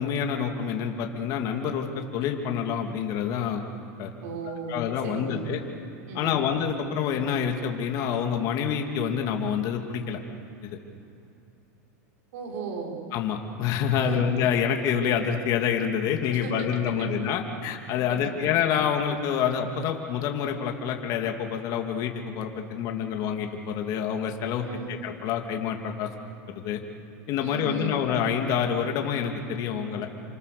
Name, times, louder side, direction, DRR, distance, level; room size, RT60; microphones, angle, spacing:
voice 1, 0.0-3.6 4.0-4.1 4.7-5.6 6.1-10.2 10.6-10.8 13.1-26.1 26.5-26.8 27.3-30.1, left 8 dB, 45° left, 3 dB, 2.6 m, -27 dB
voice 2, 4.2-5.4 6.1-6.4 12.3-12.9 14.0-14.3 16.3-16.7 17.0-17.1 18.1-18.5 24.6-24.9 27.4-28.0, right 4 dB, 70° right, 0 dB, 6.2 m, -36 dB
29.5 x 26.0 x 6.8 m, 2.7 s
supercardioid pair, 130°, 9 cm